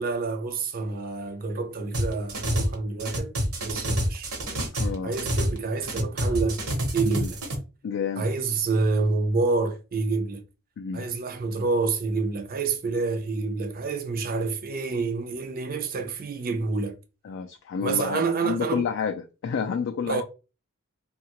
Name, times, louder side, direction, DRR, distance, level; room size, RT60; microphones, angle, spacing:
voice 1, 0.0-3.3 3.6-4.3 5.0-6.6 6.9-7.4 8.2-10.4 10.9-17.0 17.8-18.9 20.1-20.2, right 3 dB, 40° right, 0.5 m, -28 dB
sound 1, 1.9-2.7 3.0-5.6 5.8-7.6, equal, 70° right, 0.9 m, -27 dB
voice 2, 4.8-5.2 7.1-7.3 7.8-8.3 10.8-11.1 17.2-20.2, left 6 dB, 55° left, 0.3 m, -30 dB
2.8 x 2.3 x 2.9 m
head